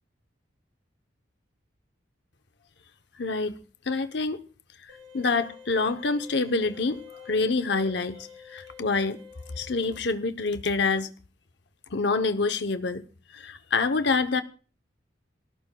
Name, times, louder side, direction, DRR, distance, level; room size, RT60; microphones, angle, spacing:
voice 1, 3.2-3.6 3.9-4.4 5.1-9.2 9.6-11.1 11.9-13.0 13.3-14.4, left 3 dB, 60° left, 0.8 m, -26 dB
sound 1, 4.9-10.0, left 6 dB, 65° right, 5.7 m, -48 dB
29.5 x 13.5 x 2.3 m
head